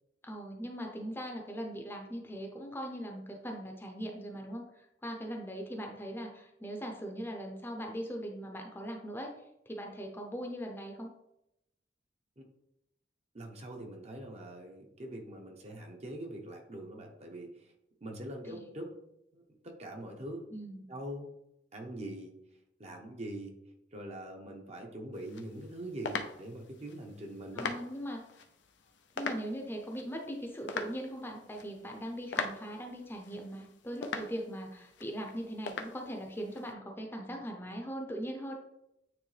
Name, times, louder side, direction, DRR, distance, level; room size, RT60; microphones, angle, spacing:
voice 1, 0.2-4.6 5.0-9.3 9.7-11.1 18.5-18.7 20.5-20.9 27.5-28.2 29.2-38.5, equal, 15° left, 2 dB, 0.7 m, -40 dB
voice 2, 13.3-17.7 18.0-18.9 19.3-20.5 20.9-21.3 21.7-22.3 22.8-23.5 23.9-27.7, right 1 dB, 35° right, 2 dB, 0.9 m, -43 dB
sound 1, 25.1-36.7, left 4 dB, 90° left, 0.6 m, -42 dB
8.9 x 3.2 x 3.3 m, 0.85 s
head